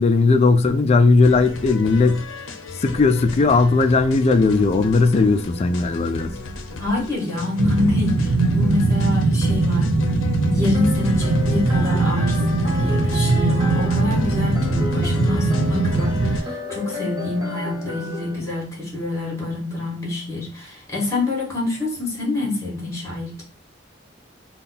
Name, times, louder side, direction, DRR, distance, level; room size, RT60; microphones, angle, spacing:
voice 1, 0.0-2.2 2.8-6.3, left 3 dB, 35° left, 0.3 m, -17 dB
sound 1, 1.2-16.4, left 3 dB, 85° left, 0.6 m, -35 dB
voice 2, 6.7-9.9 10.5-23.3, left 2 dB, 15° left, 1.5 m, -26 dB
sound 2, 7.6-16.4, right 2 dB, 70° right, 0.5 m, -20 dB
sound 3, 10.7-18.4, left 2 dB, 25° right, 1.0 m, -32 dB
3.6 x 2.3 x 3.9 m
head